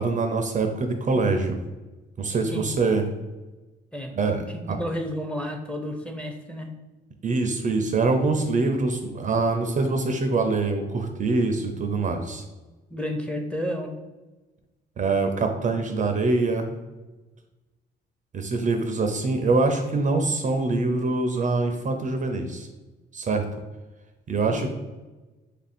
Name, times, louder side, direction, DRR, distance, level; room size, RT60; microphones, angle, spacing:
voice 1, 0.0-1.5 2.2-3.0 4.2-4.4 4.7-4.8 7.2-12.4 15.0-16.8 18.3-22.7 23.1-23.4 24.3-24.7, right 3 dB, 40° right, 5 dB, 0.4 m, -24 dB
voice 2, 2.3-2.7 3.9-4.2 4.5-6.7 12.9-14.0 24.5-24.7, equal, 5° left, 3 dB, 0.6 m, -31 dB
3.2 x 2.5 x 4.2 m, 1.2 s
cardioid pair, 90°, 20 cm